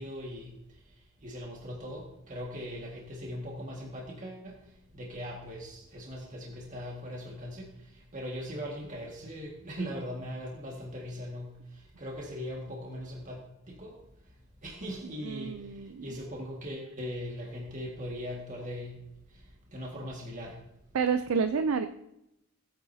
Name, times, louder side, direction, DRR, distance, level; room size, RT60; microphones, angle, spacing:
voice 1, 0.0-14.0 14.6-19.0 19.3-20.6, equal, 40° right, -2 dB, 1.9 m, -40 dB
voice 2, 15.0-16.2 20.9-21.9, right 5 dB, 90° right, 10 dB, 0.5 m, -29 dB
16.5 x 9.7 x 2.8 m, 0.83 s
head